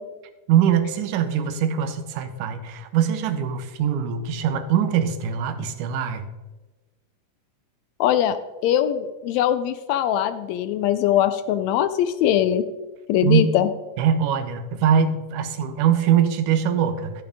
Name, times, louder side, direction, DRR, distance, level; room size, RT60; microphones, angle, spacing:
voice 1, 0.5-6.3 13.2-13.5 14.0-17.2, right 8 dB, 85° right, 9 dB, 2.4 m, -22 dB
voice 2, 8.0-8.4 8.6-12.6 13.1-13.7, left 11 dB, 80° left, 11 dB, 1.6 m, -21 dB
13.0 x 8.7 x 3.5 m, 1.2 s
omnidirectional pair, 3.6 m